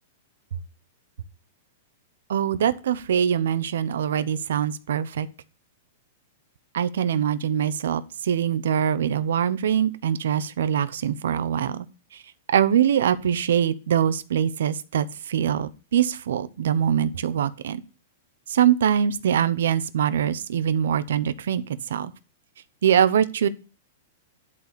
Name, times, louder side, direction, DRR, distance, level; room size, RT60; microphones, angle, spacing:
voice 1, 2.3-5.3 6.7-11.8 12.5-17.8 18.5-21.6 21.9-22.1 22.8-23.5, right 9 dB, 85° right, 13 dB, 0.8 m, -23 dB
11.0 x 4.2 x 6.8 m, 0.32 s
supercardioid pair, 155°, 0 cm